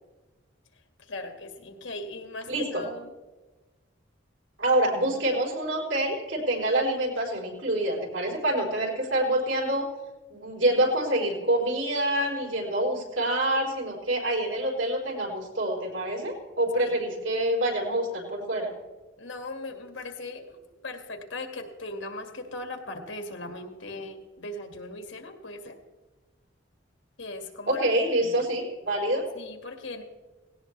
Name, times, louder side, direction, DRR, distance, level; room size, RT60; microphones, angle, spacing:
voice 1, 0.7-3.1 16.8-17.0 19.2-25.8 27.2-28.5 29.3-30.0, left 2 dB, 75° left, 5 dB, 2.0 m, -39 dB
voice 2, 2.5-2.8 4.6-9.9 10.3-18.7 27.7-29.3, right 1 dB, 75° right, -2 dB, 4.5 m, -26 dB
18.0 x 17.0 x 3.3 m, 1.2 s
head